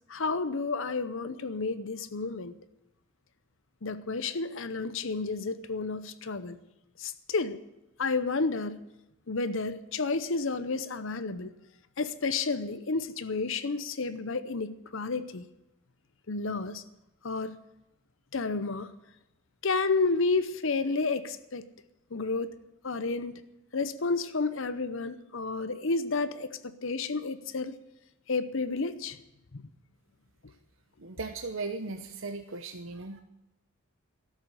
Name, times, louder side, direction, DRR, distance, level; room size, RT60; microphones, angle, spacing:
voice 1, 0.1-2.6 3.8-6.6 7.0-7.6 8.0-8.8 9.3-11.5 12.0-15.5 16.3-16.8 17.2-17.6 18.3-18.9 19.6-21.7 22.1-22.5 22.8-23.4 23.7-27.7 28.3-29.2 29.5-29.7, left 3 dB, 65° left, 13 dB, 0.8 m, -31 dB
voice 2, 31.0-33.2, right 3 dB, 65° right, 6 dB, 0.9 m, -37 dB
13.0 x 7.4 x 10.0 m, 0.92 s
head